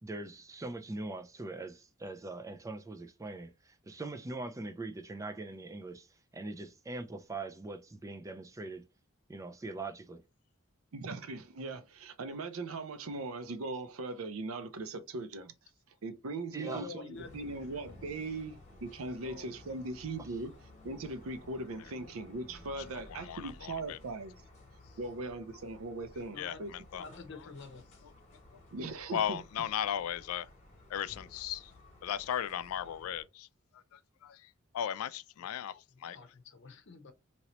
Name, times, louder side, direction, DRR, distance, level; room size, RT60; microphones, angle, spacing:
voice 1, 0.0-8.9 9.3-10.2 16.5-16.9, right 2 dB, 15° right, 0.4 m, -42 dB
voice 2, 10.9-15.5 16.0-20.6 20.8-24.4 25.0-26.7 28.7-29.4, right 2 dB, 75° right, 0.5 m, -40 dB
voice 3, 16.6-17.4 19.2-19.5 26.3-26.7 27.0-27.8 35.9-37.1, left 3 dB, 60° left, 0.8 m, -47 dB
sound 1, 17.1-33.2, left 1 dB, 35° left, 1.4 m, -55 dB
voice 4, 22.9-24.0 26.4-27.0 29.1-30.5 30.9-31.7 32.0-33.5 33.9-36.2, left 10 dB, 85° left, 0.3 m, -37 dB
3.0 x 2.9 x 3.0 m
head